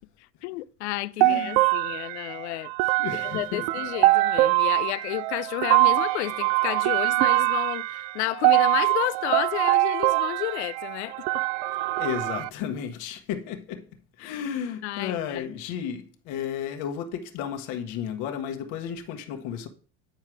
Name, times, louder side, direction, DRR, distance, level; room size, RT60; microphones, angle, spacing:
voice 1, 0.4-2.7 3.2-11.4 14.2-14.4 14.8-15.5, left 17 dB, 80° left, 0.5 m, -31 dB
voice 2, 1.2-1.6 3.0-3.7 12.0-13.9 14.2-19.7, left 8 dB, 60° left, 1.4 m, -33 dB
sound 1, 1.2-12.5, right 21 dB, 60° right, 0.4 m, -23 dB
9.3 x 4.7 x 4.6 m
supercardioid pair, 100°, 33 cm